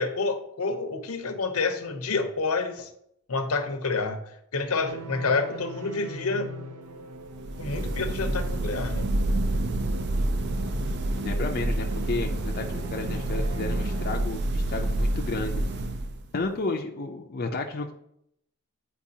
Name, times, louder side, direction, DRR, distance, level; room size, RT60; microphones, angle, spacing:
voice 1, 0.0-2.9 3.3-4.2 4.5-6.5 7.6-9.1, left 4 dB, 80° left, 6 dB, 0.7 m, -28 dB
sound 1, 4.9-14.2, right 1 dB, 80° right, 0.7 m, -40 dB
sound 2, 7.3-16.4, right 1 dB, 50° right, 0.4 m, -28 dB
voice 2, 11.1-15.6 16.3-17.9, left 3 dB, 40° left, 1 dB, 0.4 m, -32 dB
8.5 x 4.5 x 2.7 m, 0.75 s
head